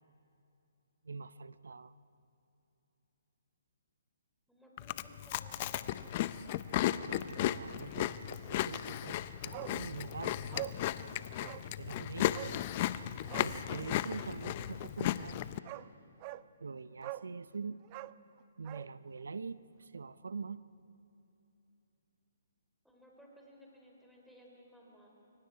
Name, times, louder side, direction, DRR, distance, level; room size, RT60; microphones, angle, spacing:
voice 1, 1.0-1.9 6.8-9.1 9.4-10.4 11.4-12.4 13.3-15.4 16.6-17.8 18.6-20.6, right 4 dB, 80° right, 15 dB, 0.8 m, -44 dB
voice 2, 4.5-6.2 22.8-25.1, equal, ahead, -3 dB, 4.0 m, -58 dB
Chewing mastication, 4.8-15.6, left 13 dB, 35° left, 0.6 m, -35 dB
Bark, 9.5-9.8 10.1-10.2 10.5-10.8 11.4-11.7 12.3-12.6 13.2-13.5 15.1-15.2 15.6-15.9 16.2-16.5 17.0-17.3 17.8-18.9 19.2-19.3, right 18 dB, 30° right, 0.4 m, -43 dB
29.0 x 23.5 x 4.8 m, 2.9 s
hypercardioid pair, 145°, 0 cm